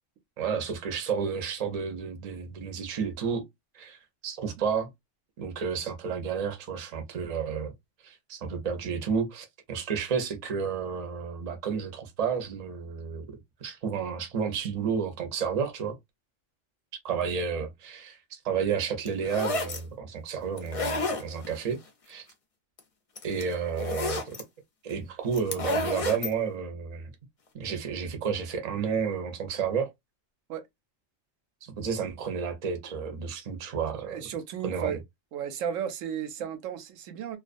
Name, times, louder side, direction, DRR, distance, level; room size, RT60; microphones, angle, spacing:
voice 1, 0.4-3.4 3.7-4.0 4.2-4.9 5.4-7.7 8.0-13.3 13.6-16.0 17.0-21.8 22.1-22.3 23.2-24.3 24.8-27.1 27.5-29.9 31.6-34.2 34.6-35.0, right 6 dB, 40° right, 0.6 m, -31 dB
sound 1, 19.1-19.8 20.6-21.6 22.8-22.9 23.2-24.4 25.3-26.3, left 2 dB, 45° left, 0.4 m, -30 dB
voice 2, 34.0-35.0 35.3-37.4, right 8 dB, 85° right, 1.0 m, -34 dB
2.4 x 2.3 x 2.4 m
omnidirectional pair, 1.3 m